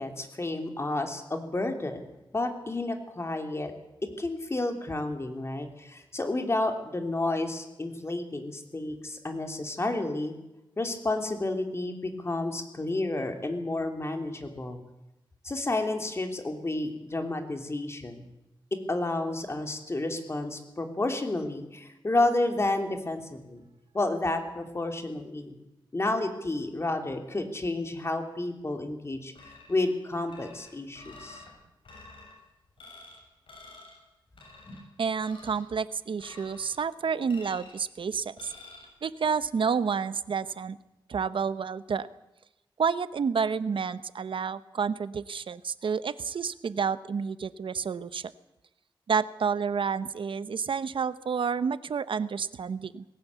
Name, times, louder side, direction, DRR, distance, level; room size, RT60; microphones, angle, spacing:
voice 1, 0.0-2.0 2.3-3.7 4.2-10.4 10.8-14.8 15.4-18.3 18.9-23.6 23.9-25.6 25.9-29.3 29.7-31.4 34.7-34.8, left 2 dB, 30° left, 5 dB, 3.0 m, -31 dB
sound 1, 29.4-29.9 30.3-31.5 31.8-32.3 32.8-33.2 33.5-34.0 34.4-34.8 35.2-35.7 36.2-36.8 37.3-37.8 38.4-38.9, left 3 dB, 90° left, 6.8 m, -49 dB
voice 2, 35.0-38.5 39.0-40.8 41.1-42.1 42.8-48.3 49.1-53.0, right 6 dB, 80° right, 15 dB, 0.9 m, -29 dB
20.0 x 17.5 x 8.4 m, 0.93 s
wide cardioid pair, 125°, 9 cm